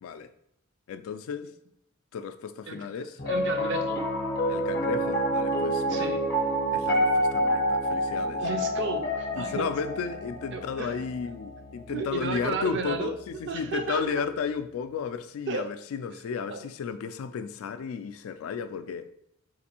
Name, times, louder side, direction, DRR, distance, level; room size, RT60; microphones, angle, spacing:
voice 1, 0.9-1.5 2.1-3.2 4.5-6.1 6.7-8.4 9.4-19.1, left 6 dB, 75° left, 11 dB, 0.3 m, -33 dB
voice 2, 2.7-4.0 5.9-6.2 8.4-9.7 10.5-11.0 11.9-14.2 15.5-15.6 16.5-16.7, right 4 dB, 55° right, 6 dB, 0.4 m, -33 dB
Piano, 3.2-13.6, equal, 45° left, 0.7 m, -28 dB
4.0 x 2.6 x 2.8 m, 0.75 s
head